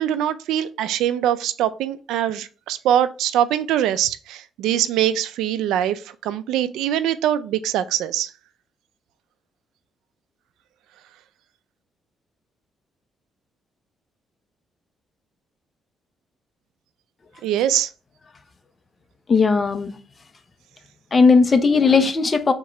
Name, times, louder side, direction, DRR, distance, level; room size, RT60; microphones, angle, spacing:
voice 1, 0.0-8.3 17.4-17.9, right 11 dB, 90° right, 0.3 m, -23 dB
voice 2, 19.3-19.9 21.1-22.5, left 4 dB, 35° left, 0.6 m, -16 dB
3.6 x 3.0 x 4.3 m
cardioid pair, 90°, 0 cm